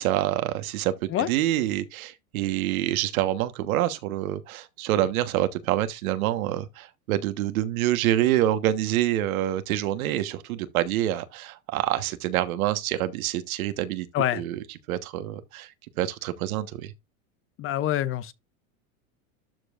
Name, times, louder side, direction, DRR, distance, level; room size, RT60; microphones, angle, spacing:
voice 1, 0.0-0.9 1.3-14.1 14.3-14.6 14.9-15.7 16.0-16.9, right 13 dB, 75° right, 1.4 m, -26 dB
voice 2, 17.6-18.3, left 12 dB, 30° left, 0.6 m, -26 dB
12.5 x 4.5 x 2.5 m
supercardioid pair, 120°, 42 cm